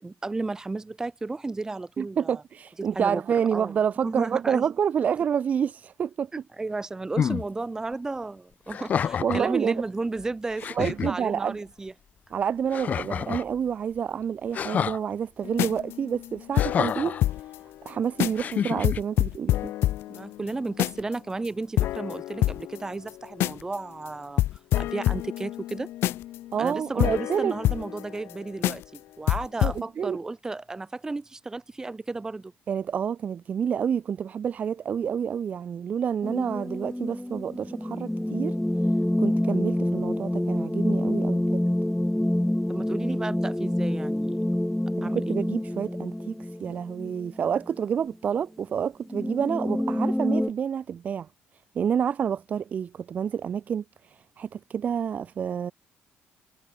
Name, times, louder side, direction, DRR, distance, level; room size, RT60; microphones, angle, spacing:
voice 1, 0.0-2.4 2.8-3.8 4.0-4.7 6.3-11.9 20.1-24.4 24.8-25.9 26.6-32.5 42.7-44.4 45.0-45.4, right 3 dB, 15° right, 6.3 m, -33 dB
voice 2, 2.0-6.3 9.2-9.8 10.8-11.6 12.3-17.2 17.8-19.7 26.5-27.5 29.6-30.2 32.7-38.5 39.2-41.6 45.0-51.3 51.7-55.7, right 7 dB, 35° right, 0.7 m, -28 dB
sound 1, 7.2-7.4 8.7-9.5 10.2-10.3 10.6-11.1 12.7-13.5 14.5-15.0 16.5-17.2 18.4-19.0, left 8 dB, 35° left, 1.1 m, -28 dB
sound 2, 15.4-17.6 17.9-18.0 18.2-18.5 18.8-21.1 21.5-21.6 21.8-23.8 24.1-24.2 24.4-28.3 28.6-29.0 29.3-29.8, left 14 dB, 65° left, 0.4 m, -27 dB
sound 3, 36.2-47.7 48.0-48.1 49.1-50.5, left 1 dB, 5° left, 1.7 m, -27 dB
cardioid pair, 155°, 4 cm